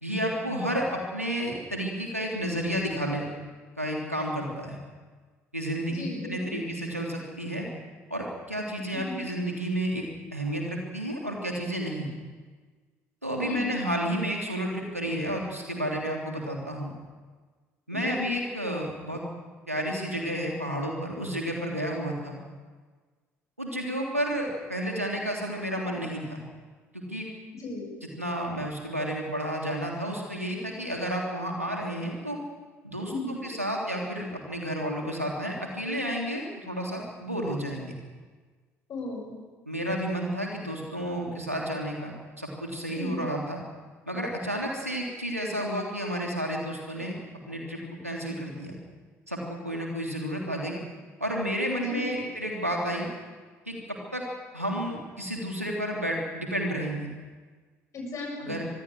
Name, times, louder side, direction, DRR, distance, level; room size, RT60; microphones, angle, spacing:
voice 1, 0.0-3.3 3.8-4.8 5.5-7.7 8.1-10.0 10.3-12.1 13.2-16.9 17.9-19.2 19.7-22.4 23.6-26.4 26.9-27.3 28.2-32.4 32.8-38.0 39.6-43.6 44.1-47.1 47.5-48.7 49.3-50.8 51.2-53.1 53.7-54.2 54.5-57.1 58.4-58.7, equal, 90° right, 0 dB, 3.3 m, -31 dB
voice 2, 5.9-6.6 8.9-9.3 13.4-13.7 17.9-18.3 27.5-27.9 33.1-33.5 38.9-39.4 42.9-43.3 51.8-52.3 57.9-58.6, left 2 dB, 45° left, 0 dB, 7.2 m, -36 dB
25.5 x 20.0 x 6.4 m, 1.4 s
figure-of-eight pair, 55°, 8 cm